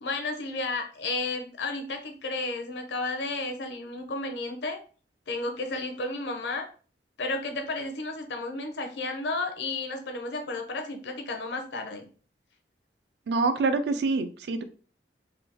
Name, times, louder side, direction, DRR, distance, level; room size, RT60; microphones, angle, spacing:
voice 1, 0.0-4.8 5.3-6.7 7.2-12.1, left 2 dB, 75° left, 5 dB, 0.7 m, -32 dB
voice 2, 13.3-14.6, right 3 dB, 70° right, 9 dB, 0.4 m, -26 dB
3.5 x 2.3 x 2.9 m, 0.39 s
head